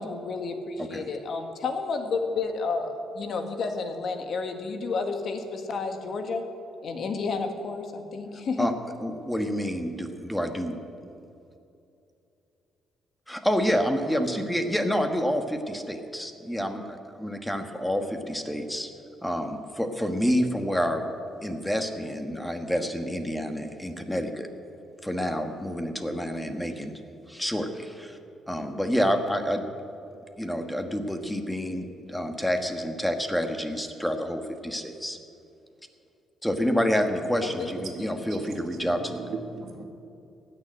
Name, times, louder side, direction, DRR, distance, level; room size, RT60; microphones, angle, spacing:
voice 1, 0.0-6.4 6.8-8.7 37.6-37.7, left 4 dB, 60° left, 5 dB, 1.6 m, -31 dB
voice 2, 9.0-10.8 13.3-18.9 19.2-21.0 21.4-24.5 25.0-27.0 27.3-28.2 28.5-29.6 30.4-35.2 36.4-39.2, equal, 5° left, 6 dB, 1.4 m, -28 dB
voice 3, 37.8-39.8, right 4 dB, 65° right, 3 dB, 2.1 m, -39 dB
15.5 x 6.9 x 10.0 m, 2.7 s
cardioid pair, 90°, 0 cm